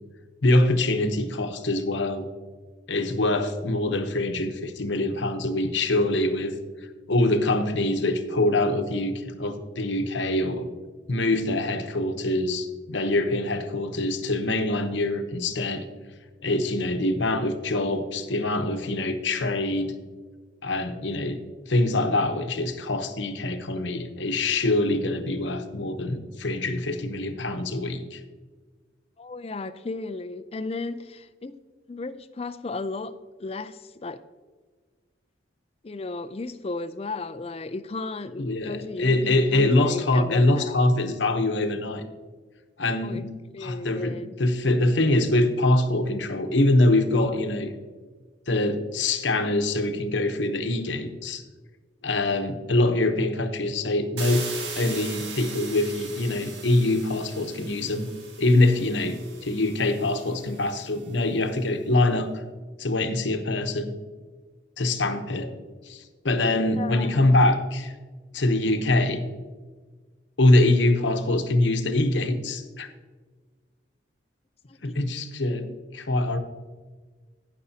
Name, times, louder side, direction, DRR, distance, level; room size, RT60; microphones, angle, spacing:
voice 1, 0.4-2.3 2.9-6.6 7.1-10.7 11.1-15.9 16.4-19.9 20.6-28.2 38.4-42.0 42.8-43.3 43.6-47.7 48.5-51.4 52.0-54.4 54.8-58.1 58.4-62.4 62.8-63.9 64.8-65.5 65.8-67.9 68.3-69.3 70.4-72.9 74.8-75.7 75.9-76.4, left 2 dB, 75° left, 7 dB, 0.9 m, -24 dB
voice 2, 29.2-31.6 31.9-34.2 35.8-40.8 43.0-43.3 43.5-44.3 66.8-67.4 74.7-75.0 75.6-75.7, left 3 dB, 30° left, 11 dB, 0.4 m, -35 dB
sound 1, 54.2-61.0, right 3 dB, 65° right, 1.6 m, -39 dB
16.5 x 6.2 x 2.8 m, 1.4 s
head